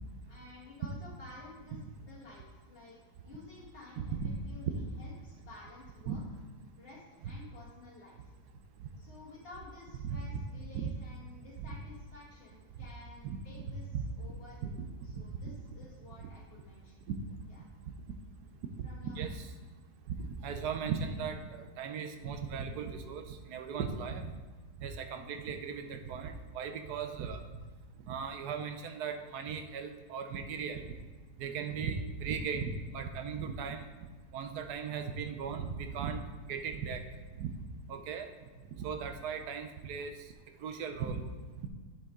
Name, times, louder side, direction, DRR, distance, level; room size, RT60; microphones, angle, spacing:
voice 1, 0.3-3.0 3.2-4.1 4.5-6.2 6.8-8.3 9.0-13.9 14.1-14.7 15.0-17.1 17.5-17.6 18.8-19.3, left 3 dB, 40° left, -7 dB, 1.6 m, -53 dB
voice 2, 4.0-4.3 6.1-6.2 8.8-8.9 10.0-10.2 10.7-10.9 11.6-11.7 13.2-13.6 13.9-14.0 14.6-14.9 15.1-15.6 16.2-16.3 17.1-17.2 18.8-19.5 20.2-24.3 24.8-27.4 28.1-30.9 31.4-33.9 34.3-36.2 36.5-37.0 37.4-37.5 37.9-38.3 38.8-40.1 40.6-41.2 41.6-41.7, right 6 dB, 85° right, 7 dB, 1.3 m, -37 dB
7.8 x 6.9 x 3.7 m, 1.4 s
omnidirectional pair, 1.7 m